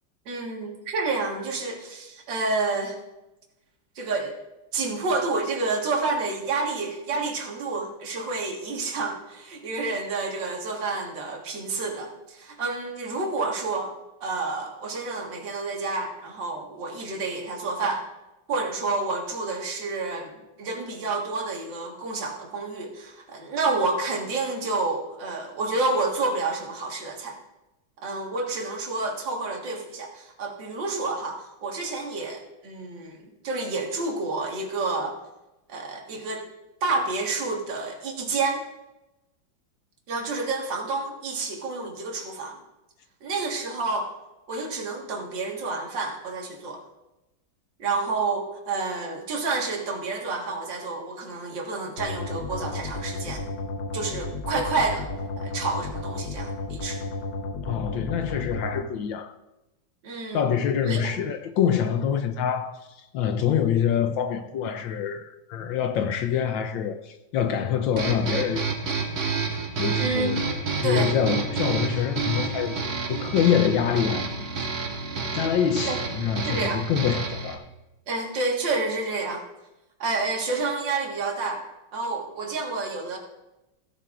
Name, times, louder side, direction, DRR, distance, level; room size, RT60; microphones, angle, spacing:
voice 1, 0.3-3.0 4.0-4.4 4.7-13.9 14.2-18.1 18.5-20.3 20.6-27.4 28.0-33.2 33.4-35.2 35.7-36.5 36.8-38.6 40.1-42.6 43.2-44.1 44.5-46.8 47.8-53.5 53.9-55.1 55.4-57.0 60.0-60.5 60.8-61.1 70.0-70.4 70.8-71.2 75.9-76.0 76.5-76.8 78.1-79.4 80.0-81.7 81.9-83.2, right 3 dB, 65° right, 2.3 m, -29 dB
sound 1, 52.0-58.8, left 2 dB, 60° left, 1.6 m, -33 dB
voice 2, 57.7-59.3 60.3-62.8 63.1-68.7 69.8-70.4 70.8-72.8 73.1-74.3 74.6-74.7 75.3-77.6, left 8 dB, 80° left, 1.4 m, -25 dB
sound 2, 68.0-77.6, right 4 dB, 90° right, 2.2 m, -29 dB
16.0 x 11.5 x 2.5 m
omnidirectional pair, 2.2 m